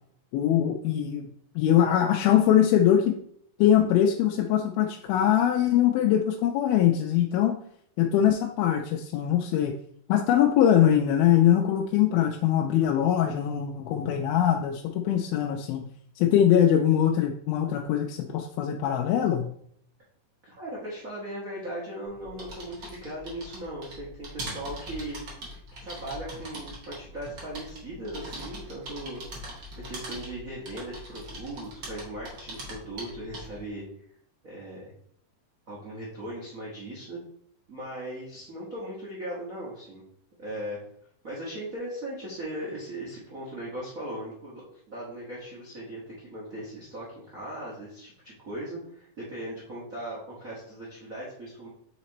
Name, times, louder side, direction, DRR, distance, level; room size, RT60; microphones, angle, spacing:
voice 1, 0.3-1.3 1.6-3.2 3.6-7.6 8.0-9.7 10.1-15.9 16.2-19.5, left 10 dB, 90° left, 2 dB, 2.4 m, -22 dB
voice 2, 20.4-25.2 25.4-29.2 29.7-33.8 34.4-34.8 35.7-37.2 37.7-40.0 40.4-40.8 41.2-51.7, right 1 dB, 60° right, -6 dB, 0.8 m, -38 dB
sound 1, 22.0-33.7, right 1 dB, 45° right, 1.6 m, -42 dB
5.8 x 4.2 x 4.1 m, 0.66 s
omnidirectional pair, 4.1 m